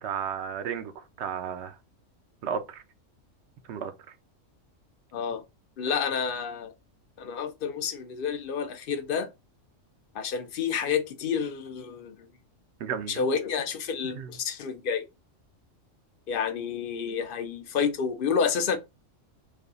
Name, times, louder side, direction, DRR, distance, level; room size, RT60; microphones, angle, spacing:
voice 1, 0.0-1.8 2.4-2.8 3.7-3.9 12.8-13.1 14.0-14.3, right 7 dB, 65° right, 0.8 m, -33 dB
voice 2, 5.8-6.7 7.2-9.3 10.1-12.3 13.1-15.1 16.3-18.8, left 6 dB, 55° left, 0.7 m, -29 dB
3.3 x 2.3 x 3.7 m
omnidirectional pair, 1.3 m